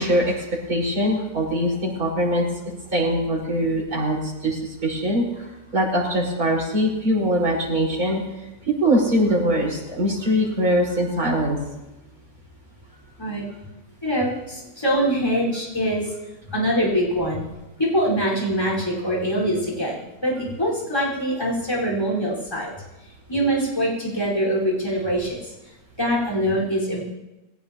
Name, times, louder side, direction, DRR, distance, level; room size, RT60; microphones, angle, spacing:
voice 1, 0.0-2.5 2.9-5.5 5.7-8.2 8.7-11.6, equal, 75° right, -5 dB, 5.8 m, -22 dB
voice 2, 14.0-16.0 16.5-17.4 17.8-22.7 23.3-25.5 26.0-27.0, equal, 15° left, -3 dB, 4.9 m, -23 dB
21.5 x 17.5 x 3.0 m, 1.0 s
omnidirectional pair, 1.6 m